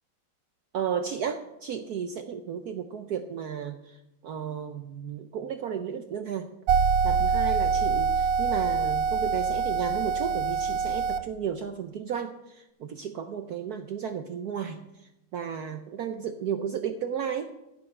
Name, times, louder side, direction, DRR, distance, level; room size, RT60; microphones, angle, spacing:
voice 1, 0.7-6.5 7.0-17.5, right 7 dB, 65° right, 7 dB, 1.2 m, -34 dB
sound 1, 6.7-11.2, right 5 dB, 80° right, 1.4 m, -25 dB
15.5 x 8.9 x 5.4 m, 0.92 s
omnidirectional pair, 2.0 m